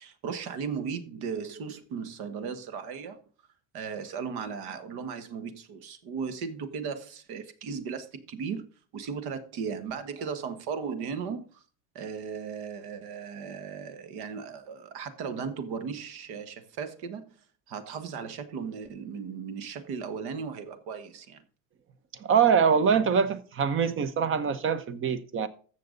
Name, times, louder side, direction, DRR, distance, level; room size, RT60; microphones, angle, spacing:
voice 1, 0.0-3.2 3.7-11.6 11.9-17.4 17.7-21.4, right 6 dB, 55° right, 1.5 m, -36 dB
voice 2, 22.2-25.5, right 6 dB, 25° right, 0.8 m, -24 dB
14.0 x 6.9 x 3.9 m
cardioid pair, 150°, 45 cm